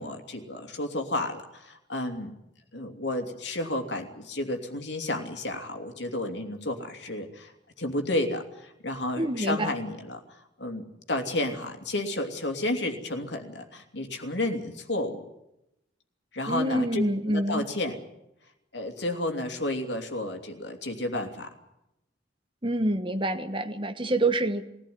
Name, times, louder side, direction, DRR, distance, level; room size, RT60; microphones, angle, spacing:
voice 1, 0.0-2.3 2.7-7.5 7.8-10.2 10.6-15.2 16.3-18.0 18.7-21.5, left 1 dB, 70° left, 5 dB, 2.9 m, -31 dB
voice 2, 9.2-9.7 16.5-17.6 22.6-24.6, right 1 dB, 25° right, 8 dB, 1.3 m, -26 dB
21.5 x 16.5 x 9.5 m, 0.87 s
head